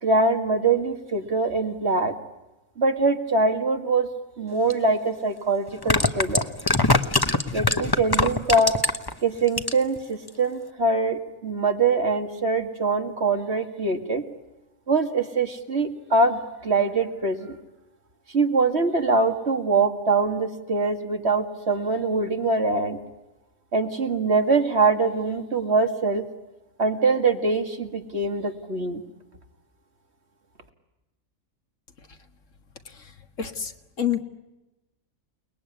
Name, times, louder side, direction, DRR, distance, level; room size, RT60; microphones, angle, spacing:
voice 1, 0.0-2.1 2.8-4.1 4.4-6.5 7.5-8.7 9.2-14.2 14.9-17.6 18.3-23.0 23.7-26.3 26.8-29.0, right 3 dB, 50° right, 6 dB, 2.4 m, -23 dB
sound 1, 4.7-4.8 5.7-9.1 9.5-10.0 10.3-10.4, left 2 dB, 20° left, 1.1 m, -22 dB
voice 2, 33.4-34.2, left 9 dB, 65° left, 7 dB, 2.1 m, -28 dB
29.5 x 20.5 x 9.7 m, 1.0 s
omnidirectional pair, 1.4 m